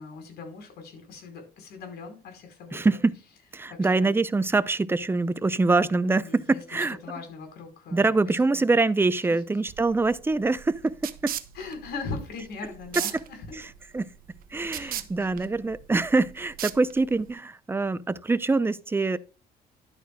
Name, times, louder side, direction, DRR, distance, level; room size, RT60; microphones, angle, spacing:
voice 1, 0.0-2.8 3.7-4.2 6.2-8.7 9.3-9.4 11.5-13.6 14.7-15.4, left 4 dB, 70° left, 4.8 m, -40 dB
voice 2, 2.7-3.2 3.5-7.0 7.9-11.3 13.9-14.1 14.5-19.2, right 3 dB, 15° right, 0.6 m, -24 dB
sound 1, 9.7-17.3, right 11 dB, 60° right, 1.0 m, -38 dB
11.5 x 9.1 x 2.3 m
cardioid pair, 110°, 17 cm